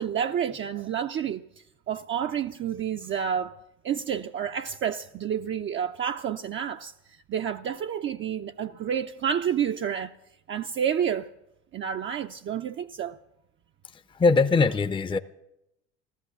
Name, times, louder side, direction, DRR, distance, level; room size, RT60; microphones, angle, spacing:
voice 1, 0.0-1.4 1.9-3.6 3.8-10.2 10.5-11.3 11.7-13.2, right 8 dB, 35° right, 0.6 m, -29 dB
voice 2, 14.1-15.2, left 4 dB, 15° left, 0.6 m, -21 dB
15.5 x 13.0 x 6.9 m
hypercardioid pair, 75°, 35 cm